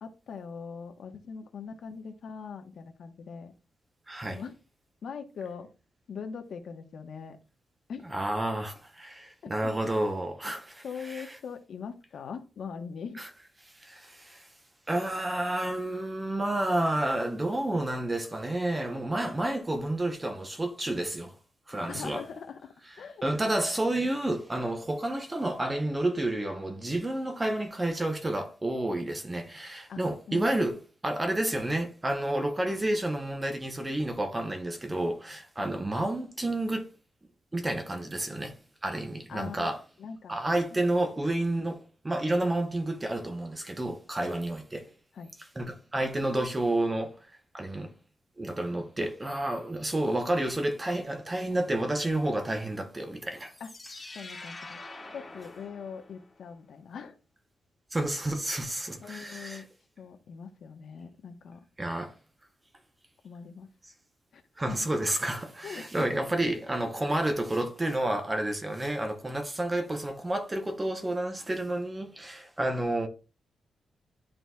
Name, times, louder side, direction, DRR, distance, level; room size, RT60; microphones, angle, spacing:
voice 1, 0.0-3.5 4.3-4.5 5.0-5.7 6.1-7.4 7.9-8.0 9.4-9.5 10.8-13.2 21.8-23.7 24.0-24.1 29.9-30.0 30.3-30.7 35.6-35.7 39.3-39.7 40.0-40.4 40.7-40.9 44.2-44.4 45.1-45.3 53.6-53.7 54.1-54.8 55.1-57.2 59.0-59.7 60.0-61.6 63.2-63.7 64.3-64.4 64.7-64.8 65.6-65.8, left 6 dB, 60° left, 1.0 m, -41 dB
voice 2, 4.1-4.4 8.1-11.3 13.2-13.3 13.8-14.5 14.9-21.3 21.7-22.2 23.2-30.8 31.0-36.9 37.5-39.8 40.3-44.9 45.6-47.9 48.4-53.5 57.9-59.6 61.8-62.1 64.6-73.1, right 1 dB, 15° right, 0.8 m, -30 dB
sound 1, 53.3-56.4, left 2 dB, 15° left, 1.0 m, -46 dB
11.5 x 3.9 x 2.3 m
wide cardioid pair, 170°, 0 cm